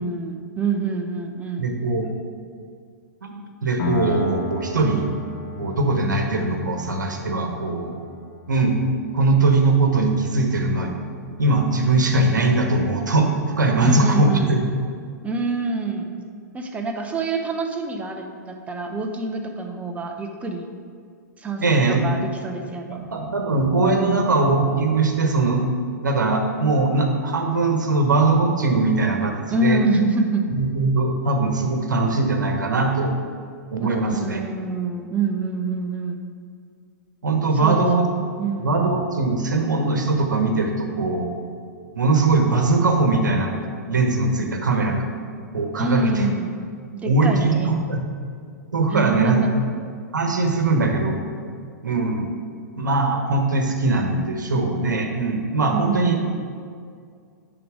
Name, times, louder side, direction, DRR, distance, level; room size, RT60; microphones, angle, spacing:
voice 1, 0.0-1.7 13.8-14.5 15.2-16.1 16.5-20.7 21.4-23.0 23.8-24.3 29.5-30.5 33.8-36.2 37.5-37.8 38.4-38.9 45.8-46.5 46.9-47.8 48.9-49.5 55.7-56.2, right 3 dB, 15° right, 4 dB, 0.8 m, -26 dB
voice 2, 1.6-2.1 3.2-3.4 3.6-5.1 5.6-7.9 8.5-8.8 9.1-10.9 11.4-14.6 21.6-22.0 22.9-25.6 26.0-29.8 30.5-33.1 33.7-34.4 37.2-38.1 38.6-41.3 41.9-43.5 43.9-44.9 45.5-46.3 47.0-48.1 48.7-49.4 50.1-51.2 51.8-52.3 52.8-56.2, right 3 dB, 85° right, 3 dB, 1.1 m, -21 dB
Piano, 3.8-11.2, left 1 dB, 50° left, 0.9 m, -35 dB
10.0 x 3.8 x 4.9 m, 2.2 s
hypercardioid pair, 115°, 10 cm